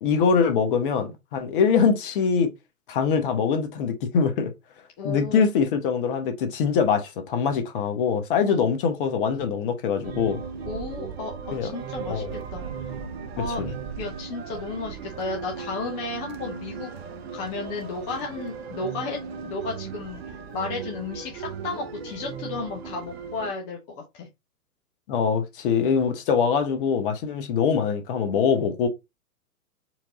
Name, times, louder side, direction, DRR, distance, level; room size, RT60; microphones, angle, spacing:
voice 1, 0.0-2.5 2.9-4.5 5.0-10.4 11.5-11.7 12.1-12.4 13.6-13.7 25.1-28.9, left 6 dB, 35° left, 1.0 m, -23 dB
voice 2, 5.0-5.5 8.5-8.7 10.7-12.6 13.4-24.3, left 3 dB, 20° left, 0.6 m, -34 dB
sound 1, 10.0-23.5, right 6 dB, 45° right, 0.8 m, -37 dB
4.5 x 2.7 x 3.7 m
figure-of-eight pair, 120°, 46 cm